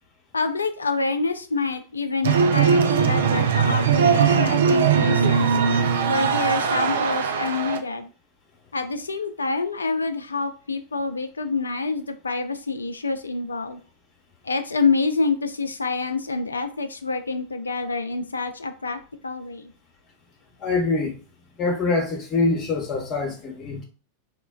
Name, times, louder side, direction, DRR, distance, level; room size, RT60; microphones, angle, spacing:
voice 1, 0.3-5.6 6.0-8.1 8.7-13.8 14.4-19.7, left 4 dB, 75° left, 0.4 m, -27 dB
sound 1, 2.2-7.8, right 6 dB, 60° right, 0.3 m, -20 dB
voice 2, 20.6-21.2 21.6-23.8, left 3 dB, 35° left, 0.9 m, -24 dB
3.8 x 2.1 x 2.2 m
figure-of-eight pair, 90°, 0 cm